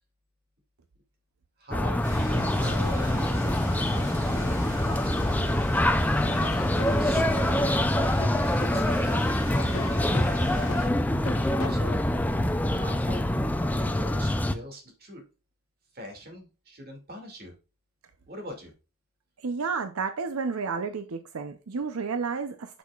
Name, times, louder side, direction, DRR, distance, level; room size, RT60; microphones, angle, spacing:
voice 1, 1.6-3.4 3.9-5.7 6.4-8.1 8.5-9.6 10.2-10.8 11.7-12.0 12.7-13.2 13.6-15.2 15.9-17.6 18.3-18.7, left 1 dB, 45° right, 2.3 m, -42 dB
sound 1, 1.7-14.5, left 1 dB, 5° left, 0.4 m, -25 dB
sound 2, 2.0-10.9, equal, 15° right, 3.3 m, -41 dB
Laughter / Drum, 6.2-12.2, left 3 dB, 80° left, 0.9 m, -40 dB
voice 2, 19.4-22.8, right 5 dB, 85° right, 0.6 m, -31 dB
8.3 x 6.3 x 2.4 m
head